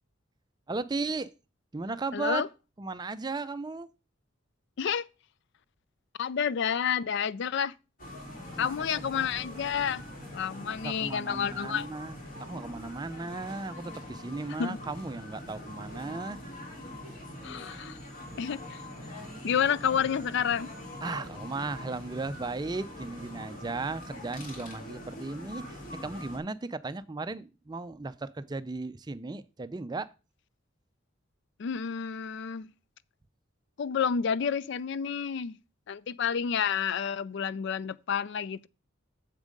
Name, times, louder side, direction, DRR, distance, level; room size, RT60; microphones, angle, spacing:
voice 1, 0.7-1.3 1.7-2.4 2.8-3.9 8.5-9.4 10.4-16.4 21.0-30.1, right 3 dB, 20° right, 0.4 m, -36 dB
voice 2, 2.1-2.5 4.8-5.1 6.2-7.7 8.6-10.0 10.3-11.9 14.6-14.8 17.4-18.0 18.4-18.8 19.4-20.7 31.6-32.7 33.8-35.6 35.9-38.7, left 7 dB, 55° left, 0.4 m, -30 dB
sound 1, 8.0-26.4, left 1 dB, 40° left, 3.1 m, -43 dB
7.4 x 7.1 x 5.2 m
head